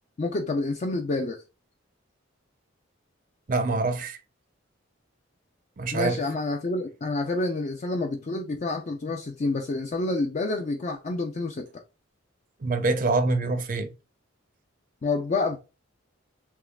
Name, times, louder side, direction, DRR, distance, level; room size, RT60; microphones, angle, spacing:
voice 1, 0.2-1.4 5.9-11.7 15.0-15.6, left 3 dB, 35° left, 0.4 m, -28 dB
voice 2, 3.5-4.2 5.8-6.2 12.6-13.9, right 3 dB, 45° right, 0.5 m, -25 dB
3.5 x 3.0 x 2.3 m
head